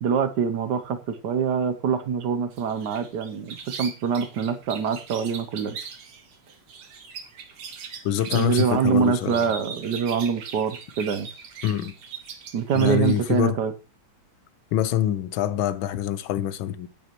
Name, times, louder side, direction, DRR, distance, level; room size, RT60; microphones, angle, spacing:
voice 1, 0.0-5.8 8.3-11.3 12.5-13.7, right 7 dB, 65° right, 1.2 m, -25 dB
sound 1, 2.5-13.4, right 6 dB, 80° right, 2.2 m, -40 dB
voice 2, 8.0-9.5 11.6-11.9 12.7-13.6 14.7-16.9, left 11 dB, 75° left, 1.4 m, -25 dB
10.5 x 9.4 x 3.0 m
omnidirectional pair, 2.3 m